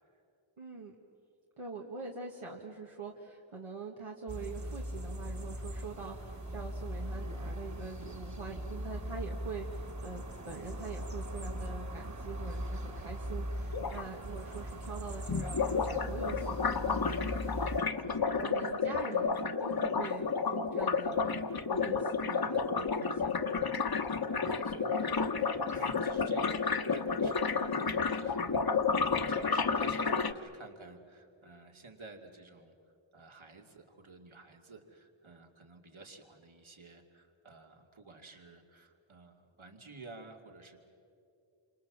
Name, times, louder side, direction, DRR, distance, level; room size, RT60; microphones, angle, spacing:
voice 1, 0.6-1.0 1.6-23.3, right 4 dB, 85° right, -1 dB, 1.9 m, -44 dB
sound 1, 4.3-17.8, equal, 35° right, 1.8 m, -40 dB
sound 2, 13.7-14.0 15.3-30.3, left 5 dB, 45° left, 1.1 m, -31 dB
voice 2, 24.0-32.7 33.1-40.8, right 3 dB, 70° right, 3 dB, 2.6 m, -53 dB
28.5 x 25.5 x 7.4 m, 2.7 s
wide cardioid pair, 65°, 49 cm